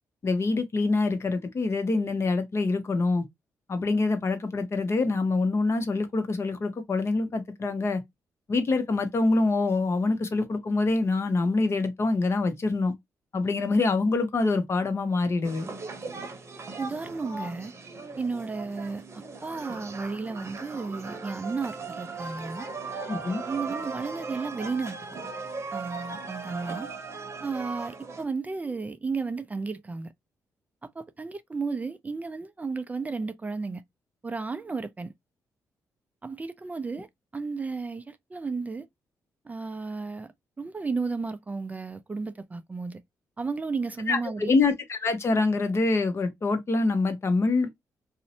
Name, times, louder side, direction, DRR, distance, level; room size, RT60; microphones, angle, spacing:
voice 1, 0.2-3.2 3.7-8.0 8.5-12.9 13.3-15.7 23.1-23.4 44.1-47.7, left 3 dB, 45° left, 0.7 m, -25 dB
sound 1, 15.4-28.2, right 4 dB, 45° right, 0.8 m, -38 dB
voice 2, 16.8-17.7 18.2-22.7 23.4-25.0 25.7-26.9 27.4-30.1 30.8-33.8 34.2-35.1 36.2-38.9 39.4-43.0 43.4-44.6, right 4 dB, 25° right, 0.3 m, -33 dB
2.6 x 2.0 x 2.7 m
cardioid pair, 75°, 7 cm